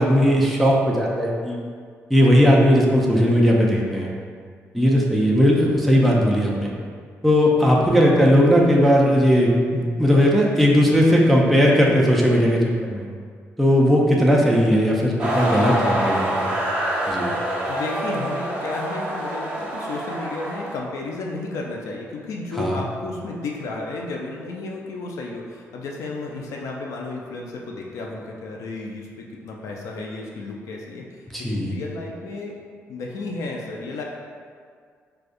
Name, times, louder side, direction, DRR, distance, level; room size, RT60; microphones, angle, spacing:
voice 1, 0.0-1.6 2.1-4.1 4.7-6.7 7.2-12.6 12.9-13.1 13.6-16.5 17.1-17.3 22.6-22.8 31.3-31.7, equal, ahead, -4 dB, 0.4 m, -17 dB
sound 1, 15.2-20.8, right 1 dB, 20° right, 0.9 m, -26 dB
voice 2, 17.7-32.6 32.9-34.0, left 2 dB, 80° left, -1 dB, 0.4 m, -32 dB
4.8 x 2.3 x 2.5 m, 2.1 s
cardioid pair, 135°, 5 cm